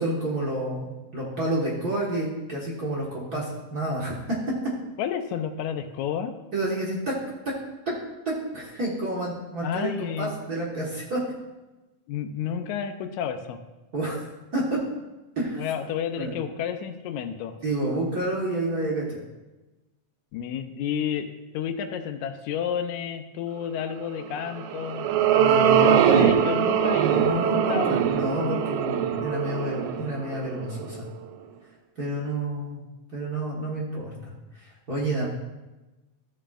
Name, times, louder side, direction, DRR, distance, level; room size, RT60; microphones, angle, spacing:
voice 1, 0.0-4.7 6.5-7.1 7.9-8.0 8.2-11.2 13.9-14.2 14.5-14.8 15.3-15.7 16.2-16.3 17.6-19.2 25.4-26.0 26.9-31.0 32.0-32.8 33.1-35.3, right 1 dB, 40° right, -5 dB, 1.5 m, -29 dB
voice 2, 5.0-6.3 9.6-10.3 12.1-13.6 15.6-17.5 20.3-21.3 21.5-25.1 25.8-27.1 27.4-28.0, left 8 dB, 85° left, 8 dB, 2.0 m, -31 dB
sound 1, 24.4-31.0, right 8 dB, 90° right, 2.0 m, -22 dB
14.0 x 6.8 x 2.5 m, 1.1 s
omnidirectional pair, 3.3 m